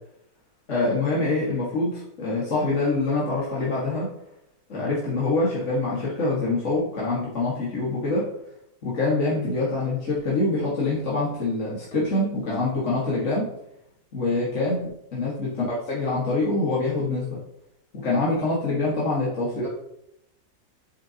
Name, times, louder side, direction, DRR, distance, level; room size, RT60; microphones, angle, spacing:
voice 1, 0.7-4.1 4.7-8.2 8.8-13.5 14.1-17.4 17.9-19.7, left 2 dB, 40° left, -6 dB, 1.9 m, -25 dB
8.7 x 7.4 x 2.9 m, 0.78 s
omnidirectional pair, 2.0 m